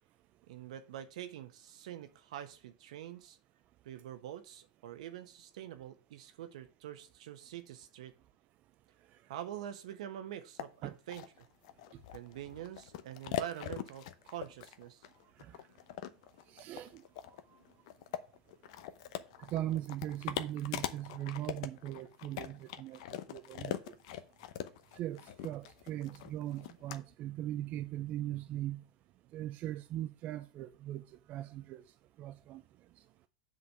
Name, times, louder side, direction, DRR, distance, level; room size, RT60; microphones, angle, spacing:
voice 1, 0.5-3.4 3.8-8.1 9.3-11.3 12.1-15.1, right 11 dB, 75° right, 1.1 m, -45 dB
sound 1, 10.6-10.7 11.1-27.0, left 11 dB, 65° left, 0.8 m, -42 dB
voice 2, 16.5-17.0 19.4-24.0 24.9-28.8 29.3-31.0 31.3-31.8 32.2-32.6, right 13 dB, 45° right, 0.5 m, -40 dB
7.3 x 4.1 x 6.7 m
hypercardioid pair, 105°, 4 cm